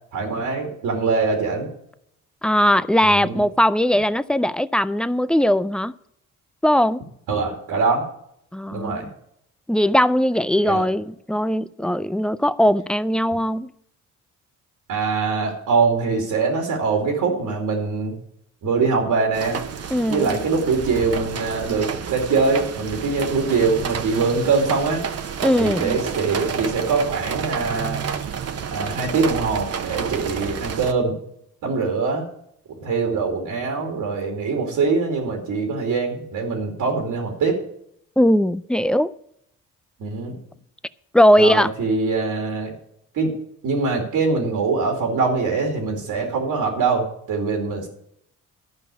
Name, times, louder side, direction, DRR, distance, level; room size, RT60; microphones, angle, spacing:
voice 1, 0.1-1.7 3.0-3.4 7.3-8.1 8.7-9.1 10.7-10.8 14.9-18.2 18.6-19.6 20.1-25.0 25.6-28.0 28.7-31.2 31.6-32.3 32.8-37.6 40.0-40.3 41.4-42.7 43.1-43.4 43.6-47.9, right 4 dB, 80° right, 2.6 m, -23 dB
voice 2, 2.4-5.9 6.6-7.0 8.5-9.1 9.7-13.7 19.9-20.4 25.4-26.0 38.2-39.1 41.1-41.7, equal, 5° left, 0.4 m, -19 dB
sound 1, 19.3-30.9, right 7 dB, 50° right, 1.0 m, -30 dB
12.5 x 5.5 x 8.3 m
cardioid pair, 90°, 33 cm